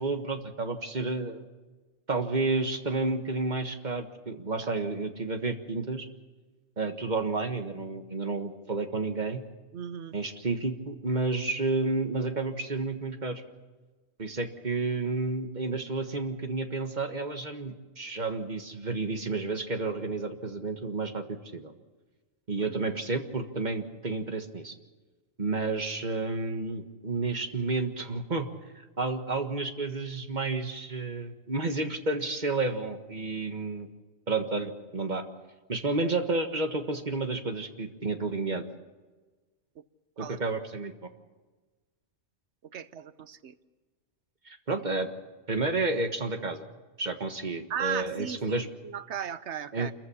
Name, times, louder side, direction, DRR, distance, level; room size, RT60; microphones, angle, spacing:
voice 1, 0.0-1.4 2.1-6.1 6.8-9.4 10.1-13.4 14.2-21.7 22.5-24.7 25.4-28.5 28.7-33.9 34.3-35.2 35.7-38.6 40.2-40.9 44.4-45.1 45.5-46.7 47.0-48.7 49.7-49.9, right 3 dB, 40° right, 6 dB, 1.7 m, -31 dB
voice 2, 9.7-10.2 22.6-22.7 39.8-39.9 40.2-40.4 42.7-43.5 47.7-49.9, right 8 dB, 75° right, 14 dB, 1.1 m, -36 dB
27.0 x 15.0 x 7.2 m, 1.3 s
omnidirectional pair, 1.2 m